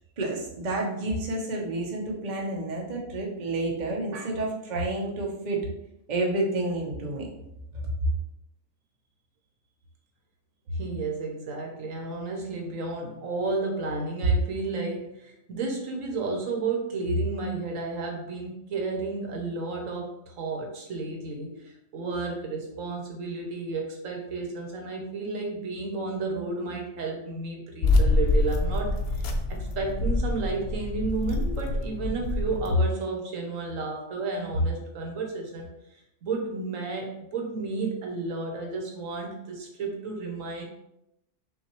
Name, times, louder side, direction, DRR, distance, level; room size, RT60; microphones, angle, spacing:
voice 1, 0.2-5.6 6.1-7.3 7.7-8.1, right 2 dB, 40° right, 0 dB, 0.8 m, -29 dB
voice 2, 10.8-35.7 36.2-40.6, right 3 dB, 75° right, 1 dB, 1.2 m, -31 dB
sound 1, 27.8-32.7, left 2 dB, 60° left, 0.7 m, -26 dB
5.7 x 2.7 x 2.9 m, 0.83 s
omnidirectional pair, 1.4 m